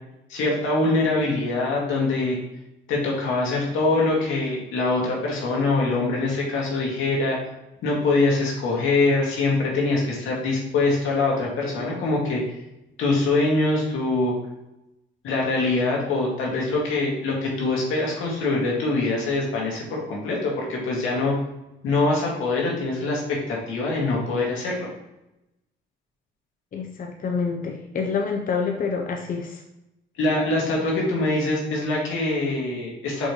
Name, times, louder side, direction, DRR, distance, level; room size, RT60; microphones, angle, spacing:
voice 1, 0.3-2.4 2.9-7.4 7.8-12.4 13.0-14.3 15.2-21.3 21.8-24.9 30.2-33.3, left 2 dB, 90° left, -3 dB, 2.1 m, -23 dB
voice 2, 26.7-29.6, left 5 dB, 45° left, 2 dB, 0.8 m, -27 dB
6.0 x 5.3 x 3.1 m, 0.91 s
cardioid pair, 90°, 20 cm